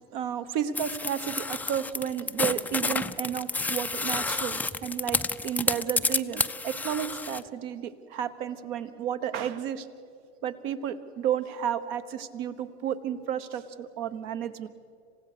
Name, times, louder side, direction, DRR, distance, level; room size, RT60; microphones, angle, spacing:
voice 1, 0.1-9.9 10.4-14.7, right 9 dB, 55° right, 12 dB, 1.3 m, -32 dB
sound 1, 0.8-7.4, left 3 dB, 5° left, 0.4 m, -30 dB
27.0 x 16.0 x 6.8 m, 2.4 s
hypercardioid pair, 90°, 33 cm